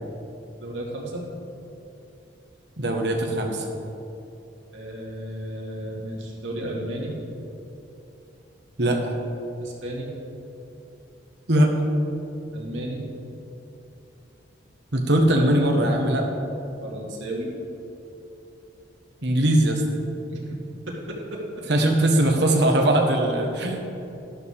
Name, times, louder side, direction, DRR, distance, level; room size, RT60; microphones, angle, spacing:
voice 1, 0.6-1.3 4.7-7.2 9.6-10.1 12.5-13.0 16.8-17.5 20.3-20.6 20.9-21.4, right 1 dB, 85° right, -3 dB, 2.3 m, -33 dB
voice 2, 2.8-3.6 8.8-9.0 11.5-11.7 14.9-16.3 19.2-19.8 21.7-23.8, right 1 dB, 60° right, 2 dB, 1.4 m, -20 dB
12.5 x 12.0 x 3.6 m, 2.9 s
head